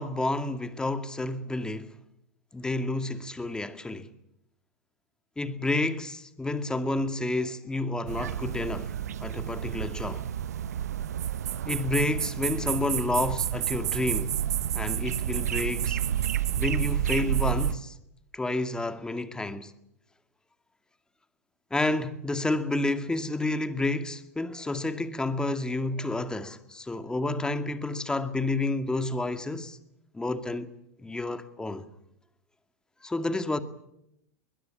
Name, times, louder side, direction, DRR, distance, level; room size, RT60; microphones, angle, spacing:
voice 1, 0.0-1.9 2.5-4.1 5.4-8.9 9.2-10.3 11.7-14.3 14.7-16.0 16.6-17.9 18.3-19.7 21.7-29.8 30.1-30.7 31.0-31.8 33.0-33.6, left 2 dB, 10° left, 2.2 m, -30 dB
sound 1, 8.1-17.7, right 10 dB, 80° right, 0.9 m, -30 dB
22.0 x 21.0 x 10.0 m
hypercardioid pair, 100°, 9 cm